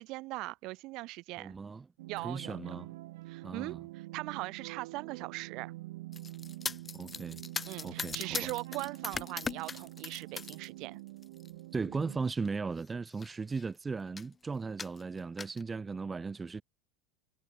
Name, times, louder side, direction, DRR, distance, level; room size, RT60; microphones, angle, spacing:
voice 1, 0.0-1.5 2.1-2.6 3.3-5.7 7.7-11.0, right 21 dB, 45° right, 4.8 m, -40 dB
voice 2, 1.4-1.9 2.2-2.9 3.4-3.8 6.9-7.4 7.8-8.5 11.7-16.6, right 4 dB, 10° right, 1.9 m, -37 dB
sound 1, 2.0-12.3, right 19 dB, 80° right, 4.0 m, -46 dB
sound 2, 6.1-10.7 11.1-11.5 12.3-12.5 12.8-12.9 13.1-13.7 14.2-14.3 14.8-15.6, left 5 dB, 15° left, 1.2 m, -40 dB
supercardioid pair, 160°, 0 cm